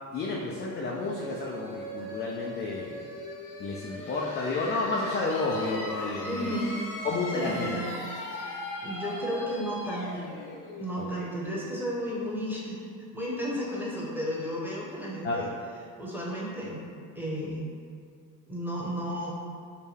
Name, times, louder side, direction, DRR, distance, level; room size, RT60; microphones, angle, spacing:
voice 1, 0.1-3.1 3.6-6.6 7.0-7.7 11.0-11.3 15.2-15.4, left 3 dB, 25° left, -3 dB, 0.4 m, -31 dB
sound 1, 0.7-12.2, left 1 dB, 40° left, 0.8 m, -39 dB
voice 2, 6.2-6.7 7.3-8.0 8.3-10.3 10.8-15.5 16.0-16.8 17.1-17.7 18.5-19.3, equal, 5° right, -6 dB, 1.0 m, -33 dB
4.6 x 2.2 x 3.4 m, 2.3 s
hypercardioid pair, 65°, 46 cm